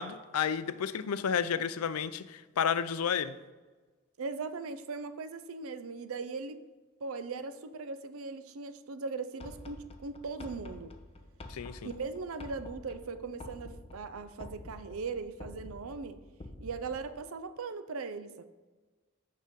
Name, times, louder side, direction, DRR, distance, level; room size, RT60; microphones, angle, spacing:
voice 1, 0.0-3.3 11.5-11.8, left 7 dB, 85° left, 14 dB, 0.4 m, -31 dB
voice 2, 4.2-6.6 7.0-10.9 11.8-16.2 16.6-18.5, right 4 dB, 70° right, 11 dB, 0.5 m, -39 dB
sound 1, 9.4-17.2, left 1 dB, 25° left, 0.6 m, -48 dB
6.6 x 6.1 x 5.3 m, 1.3 s
head